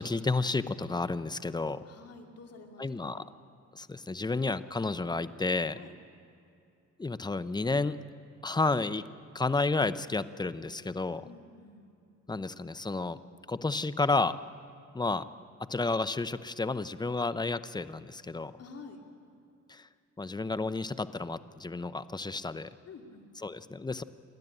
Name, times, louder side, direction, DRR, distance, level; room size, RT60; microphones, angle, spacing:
voice 1, 0.0-1.8 2.8-3.2 3.7-5.8 7.0-8.0 8.4-9.0 9.3-11.2 12.3-13.2 13.5-14.4 14.9-15.2 15.6-18.5 19.7-19.9 20.2-22.7 23.4-24.0, left 3 dB, 15° left, 14 dB, 0.7 m, -31 dB
voice 2, 1.9-3.3 5.7-5.9 11.2-11.9 15.0-15.1 18.6-19.0 22.9-23.3, left 4 dB, 55° left, 3 dB, 2.6 m, -49 dB
29.0 x 12.5 x 9.0 m, 2.6 s
cardioid pair, 90°, 30 cm